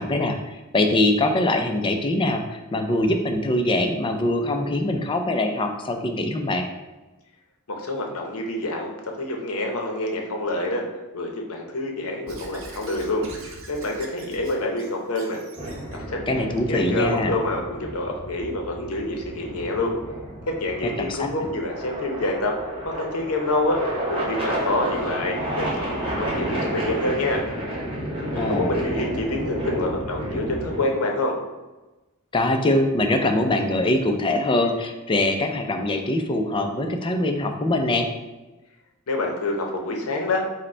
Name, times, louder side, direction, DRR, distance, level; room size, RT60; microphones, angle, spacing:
voice 1, 0.0-6.6 16.3-17.3 21.1-21.3 28.4-28.8 32.3-38.1, left 1 dB, 20° left, 5 dB, 0.4 m, -23 dB
voice 2, 7.7-10.8 11.1-15.4 15.9-19.9 20.5-22.5 22.8-23.8 24.1-27.4 28.3-31.4 39.1-40.4, left 2 dB, 70° left, 2 dB, 0.7 m, -27 dB
Squeak / Writing, 12.3-16.0, right 2 dB, 60° right, 0.7 m, -42 dB
sound 1, 15.6-30.8, right 1 dB, 25° right, 1.0 m, -31 dB
5.0 x 2.1 x 4.3 m, 1.1 s
head